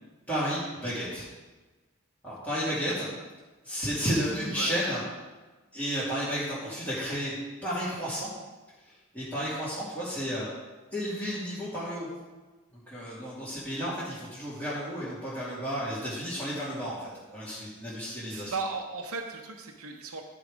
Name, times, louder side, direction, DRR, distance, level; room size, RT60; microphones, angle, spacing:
voice 1, 0.3-1.2 2.2-3.1 3.6-5.0 5.7-7.3 7.6-8.3 9.1-10.5 10.9-12.1 12.9-18.5, equal, 5° left, -13 dB, 2.7 m, -32 dB
voice 2, 4.4-4.8 18.3-20.2, right 4 dB, 70° right, 1 dB, 0.9 m, -36 dB
13.5 x 5.0 x 5.1 m, 1.2 s
head